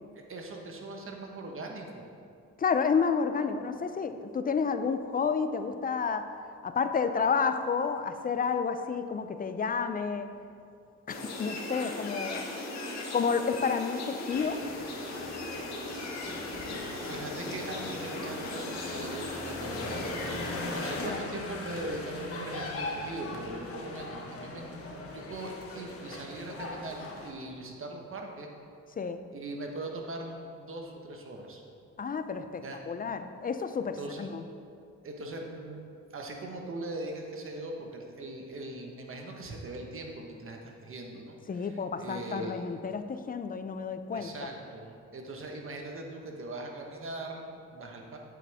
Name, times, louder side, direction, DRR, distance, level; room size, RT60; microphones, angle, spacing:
voice 1, 0.1-2.0 17.0-28.5 29.3-31.6 32.6-32.8 33.8-34.3 35.0-35.8 36.1-42.7 44.1-48.2, right 2 dB, 45° right, 2 dB, 1.3 m, -41 dB
voice 2, 2.6-6.3 6.6-10.3 11.1-12.5 13.1-14.6 21.0-21.2 29.0-29.2 32.0-34.4 41.5-44.5, left 5 dB, 30° left, 9 dB, 0.5 m, -30 dB
sound 1, 11.1-21.1, left 2 dB, 65° left, 1.7 m, -38 dB
sound 2, 14.3-27.3, left 2 dB, 50° left, 1.2 m, -40 dB
8.4 x 7.8 x 3.5 m, 2.4 s
cardioid pair, 90°, 30 cm